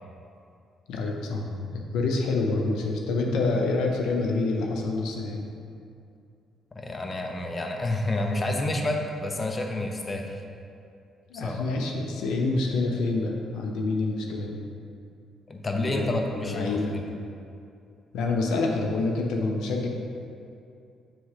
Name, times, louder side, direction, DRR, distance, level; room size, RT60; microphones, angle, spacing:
voice 1, 0.9-5.5 11.3-14.6 15.7-17.0 18.1-19.9, left 3 dB, 85° left, 1 dB, 0.7 m, -27 dB
voice 2, 6.7-10.4 11.3-11.6 15.5-17.0, left 1 dB, 30° left, 2 dB, 0.7 m, -29 dB
7.8 x 3.6 x 4.8 m, 2.5 s
cardioid pair, 90°, 0 cm